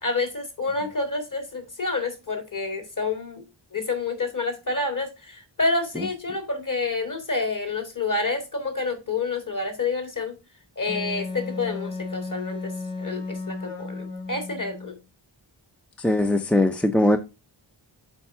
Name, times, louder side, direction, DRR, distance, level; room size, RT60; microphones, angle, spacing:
voice 1, 0.0-3.4 3.7-10.4 10.8-12.7 13.0-15.0, left 3 dB, 40° left, 2.1 m, -28 dB
Wind instrument woodwind instrument, 10.9-14.9, left 3 dB, 55° left, 2.7 m, -34 dB
voice 2, 16.0-17.2, left 1 dB, 5° left, 0.5 m, -20 dB
7.2 x 4.7 x 4.3 m
wide cardioid pair, 95°, 49 cm